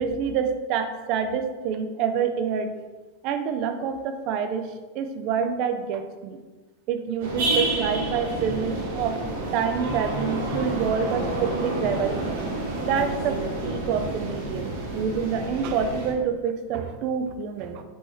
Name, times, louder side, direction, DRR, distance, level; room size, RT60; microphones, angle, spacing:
voice 1, 0.0-2.7 3.2-6.4 6.9-9.2 9.5-12.3 12.8-17.8, right 6 dB, 35° right, 7 dB, 0.4 m, -27 dB
sound 1, 7.2-16.1, right 2 dB, 80° right, 1.5 m, -29 dB
5.3 x 3.3 x 3.0 m, 1.2 s
supercardioid pair, 175°, 0 cm